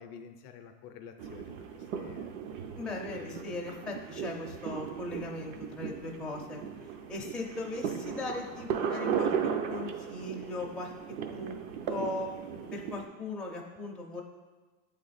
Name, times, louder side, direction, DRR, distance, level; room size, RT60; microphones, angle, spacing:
voice 1, 0.0-2.4 3.0-3.6, left 7 dB, 45° left, 6 dB, 0.5 m, -49 dB
sound 1, 1.2-13.1, right 7 dB, 60° right, 0.8 m, -36 dB
voice 2, 2.8-6.6 7.1-10.9 11.3-11.6 11.9-12.3 12.7-14.2, left 2 dB, ahead, -2 dB, 0.5 m, -38 dB
8.0 x 3.3 x 4.0 m, 1.3 s
supercardioid pair, 125°, 44 cm